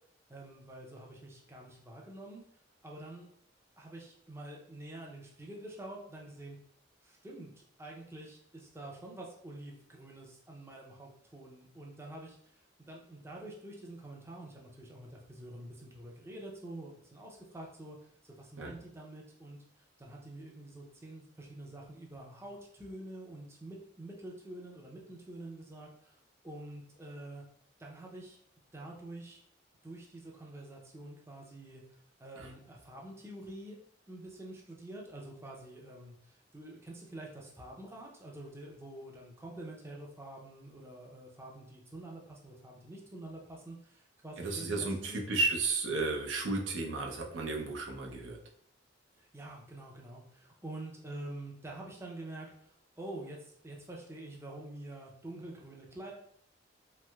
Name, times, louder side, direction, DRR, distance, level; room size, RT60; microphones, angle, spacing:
voice 1, 0.3-2.4 2.8-3.3 3.8-6.6 7.0-18.0 18.2-26.2 26.4-27.4 27.8-28.4 28.7-29.4 29.8-33.8 34.1-45.2 49.2-56.1, right 1 dB, 15° right, -2 dB, 0.4 m, -47 dB
voice 2, 44.4-48.4, right 3 dB, 80° right, 2 dB, 0.5 m, -33 dB
3.1 x 2.8 x 2.2 m, 0.67 s
head